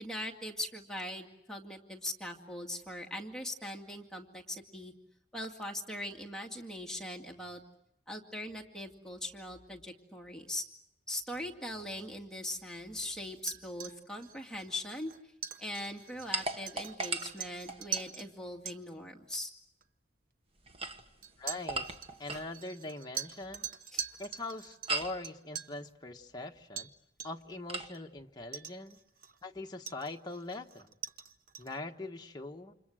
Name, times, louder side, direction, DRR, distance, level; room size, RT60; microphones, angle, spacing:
voice 1, 0.0-4.9 5.3-7.6 8.1-10.6 11.1-15.1 15.6-19.5 23.9-24.1, left 1 dB, 5° left, 0 dB, 2.2 m, -41 dB
sound 1, 13.4-18.3 18.7-18.8 19.8-19.9 21.2-25.8 26.8-26.9 27.2-27.5 27.9-28.0 28.5-29.4 29.9-31.8, right 8 dB, 55° right, 1.0 m, -43 dB
sound 2, 16.3-18.1 20.6-22.5 24.9-25.2 27.7-27.9, right 2 dB, 35° right, 1.4 m, -37 dB
voice 2, 21.4-21.9 22.2-23.7 24.2-26.9 27.2-29.0 29.4-30.9 31.6-32.7, left 2 dB, 25° left, 2 dB, 1.4 m, -42 dB
29.5 x 27.5 x 6.4 m, 0.77 s
head